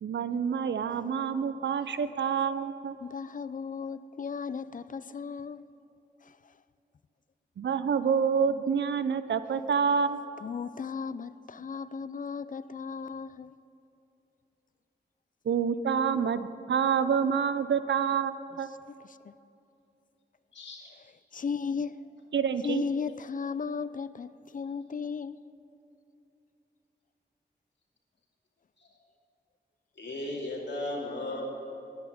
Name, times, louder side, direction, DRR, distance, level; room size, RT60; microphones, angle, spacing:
voice 1, 0.0-3.0 7.6-10.2 15.4-18.7 22.3-22.9, right 6 dB, 75° right, 0.6 m, -27 dB
voice 2, 3.0-5.6 6.2-6.4 10.4-13.5 19.2-19.3 21.3-22.0 22.6-25.4, left 5 dB, 45° left, 0.4 m, -35 dB
voice 3, 20.5-20.9 28.8-28.9 30.0-31.4, left 2 dB, 75° left, 2.6 m, -36 dB
11.0 x 9.1 x 9.3 m
cardioid pair, 60°, 19 cm